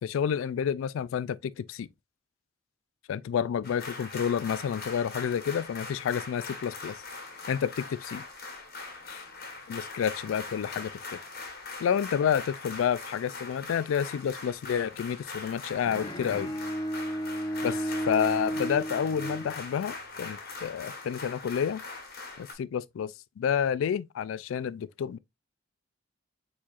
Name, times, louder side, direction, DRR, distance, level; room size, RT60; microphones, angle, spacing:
voice 1, 0.0-1.9 3.1-7.0 7.5-8.2 9.1-9.2 9.7-11.2 11.8-16.5 17.6-21.8 22.4-25.2, left 8 dB, 80° left, 0.3 m, -29 dB
sound 1, 3.6-22.5, left 3 dB, 50° left, 1.3 m, -41 dB
Bowed string instrument, 15.9-20.1, equal, 20° left, 0.7 m, -33 dB
4.6 x 4.3 x 2.4 m
head